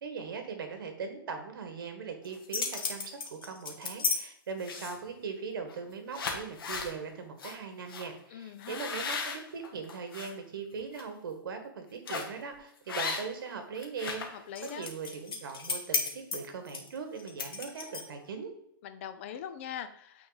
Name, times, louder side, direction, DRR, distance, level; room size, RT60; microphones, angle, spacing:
voice 1, 0.0-18.5, right 5 dB, 60° right, 6 dB, 1.6 m, -40 dB
sound 1, 2.2-4.2 4.6-5.1 5.7-5.8 6.1-6.9 7.4-7.5 7.9-8.1 8.6-10.3 10.8-11.0 12.1-12.4 12.9-13.5 13.8-18.2, left 5 dB, 75° left, 1.6 m, -35 dB
voice 2, 8.3-8.9 14.3-14.9 18.8-20.3, left 9 dB, 30° left, 10 dB, 0.5 m, -42 dB
8.8 x 3.8 x 4.0 m, 0.72 s
hypercardioid pair, 165°, 12 cm